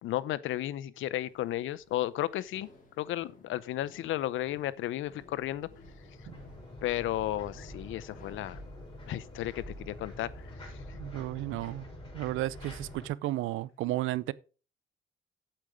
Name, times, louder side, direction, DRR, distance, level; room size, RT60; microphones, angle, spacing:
voice 1, 0.0-2.7 3.0-5.7 6.8-8.6 9.1-10.8, left 14 dB, 80° left, 0.7 m, -34 dB
sound 1, 1.2-10.5, left 2 dB, 40° left, 3.9 m, -59 dB
sound 2, 5.0-13.1, left 1 dB, 25° left, 7.0 m, -46 dB
voice 2, 11.0-11.9 12.1-14.3, right 16 dB, 90° right, 0.6 m, -33 dB
8.8 x 7.9 x 5.0 m
cardioid pair, 90°, 20 cm